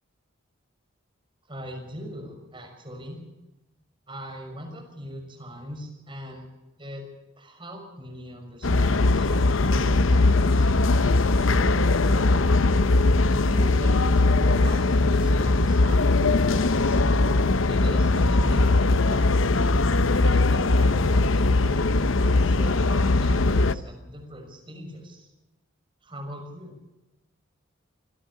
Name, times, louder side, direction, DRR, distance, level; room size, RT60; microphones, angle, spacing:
voice 1, 1.5-3.2 4.1-6.5 6.8-7.0 7.4-12.5 13.2-17.0 17.7-19.3 20.1-25.3 26.0-26.8, equal, 25° right, 2 dB, 6.1 m, -40 dB
sound 1, 8.6-23.7, left 2 dB, 75° left, 0.8 m, -20 dB
25.5 x 13.0 x 8.6 m, 1.0 s
head